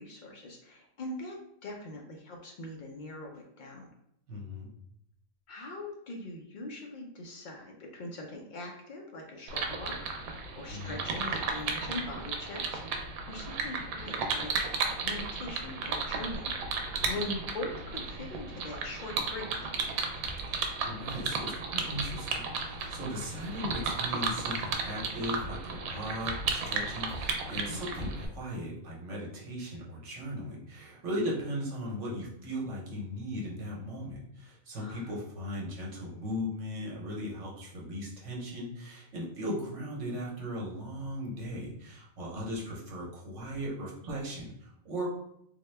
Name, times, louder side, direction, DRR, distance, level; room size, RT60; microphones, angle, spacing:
voice 1, 0.0-1.4 1.6-3.9 5.5-14.5 15.0-20.1 27.7-27.8 34.8-35.1, left 2 dB, 85° left, 1 dB, 0.4 m, -42 dB
voice 2, 4.3-4.7 10.7-11.0 17.0-17.2 20.5-45.1, equal, 65° right, -3 dB, 1.2 m, -38 dB
sound 1, 9.5-28.3, right 4 dB, 90° right, 1.0 m, -34 dB
sound 2, 20.2-20.7 21.1-21.5 21.9-22.4 22.8-23.1 23.7-24.1 24.5-24.9 25.4-25.8 26.2-26.6 27.1-27.5 27.9-28.4, equal, 35° left, 1.0 m, -45 dB
3.7 x 2.2 x 3.2 m, 0.77 s
omnidirectional pair, 1.4 m